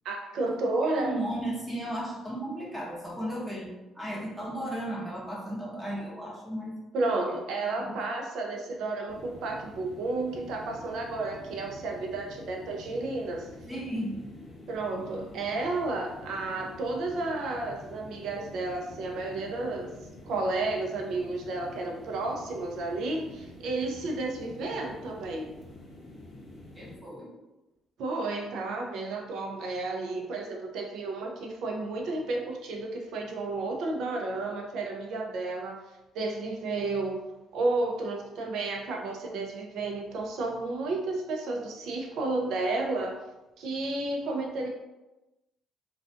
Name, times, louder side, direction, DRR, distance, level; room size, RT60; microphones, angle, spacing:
voice 1, 0.0-1.1 6.9-13.5 14.7-19.9 20.2-25.5 28.0-35.8 36.1-37.2 37.5-43.2 43.6-44.7, right 2 dB, 75° right, 1 dB, 0.5 m, -32 dB
voice 2, 0.8-6.7 7.0-7.4 7.8-8.0 13.7-14.2 26.7-27.3, right 1 dB, 10° right, -3 dB, 0.7 m, -35 dB
sound 1, 9.1-27.0, left 1 dB, 40° left, 0.8 m, -47 dB
2.4 x 2.3 x 2.4 m, 1.0 s
cardioid pair, 85°, 0 cm